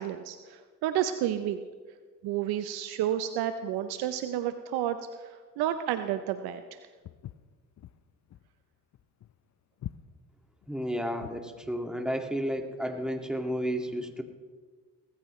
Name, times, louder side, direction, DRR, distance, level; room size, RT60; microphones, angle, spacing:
voice 1, 0.0-1.6 2.2-6.8, right 11 dB, 80° right, 9 dB, 0.7 m, -31 dB
Walk footsteps, 7.0-11.5, left 12 dB, 50° left, 0.6 m, -45 dB
voice 2, 10.7-14.2, equal, ahead, 3 dB, 2.0 m, -32 dB
20.0 x 14.0 x 3.1 m, 1.5 s
supercardioid pair, 60°, 37 cm